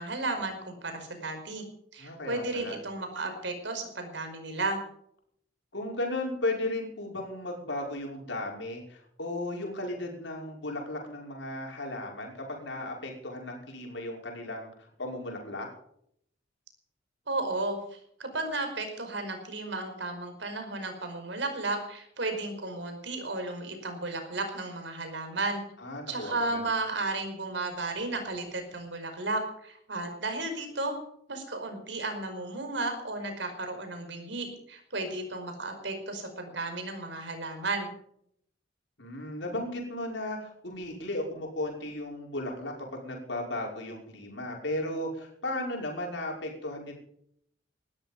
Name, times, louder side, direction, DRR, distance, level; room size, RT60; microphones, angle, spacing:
voice 1, 0.0-1.6 1.9-4.8 17.3-25.6 26.1-31.0 31.3-37.9, right 2 dB, 70° right, 6 dB, 5.2 m, -34 dB
voice 2, 2.0-2.8 5.7-14.7 15.0-15.7 25.8-26.6 39.0-46.9, left 1 dB, 75° left, 0 dB, 5.7 m, -35 dB
20.0 x 13.0 x 5.5 m, 0.69 s
head